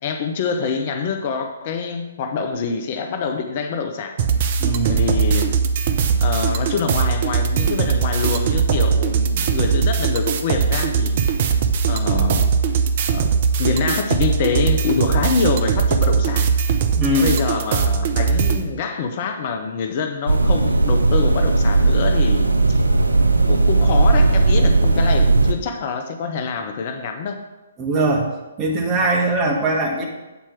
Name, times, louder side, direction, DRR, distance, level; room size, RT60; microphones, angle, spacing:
voice 1, 0.0-4.2 4.8-5.6 6.2-11.5 11.9-12.5 13.1-13.3 13.6-16.5 17.1-22.8 23.5-27.4, left 5 dB, 40° left, 6 dB, 0.6 m, -25 dB
sound 1, 4.2-18.6, right 6 dB, 45° right, 0.7 m, -20 dB
voice 2, 4.6-5.0 16.9-17.4 27.8-28.3 28.6-30.0, right 2 dB, 20° right, 0 dB, 1.5 m, -20 dB
sound 2, 20.3-25.5, right 3 dB, 80° right, 0.6 m, -16 dB
8.3 x 4.4 x 5.9 m, 1.1 s
figure-of-eight pair, 130°, 0 cm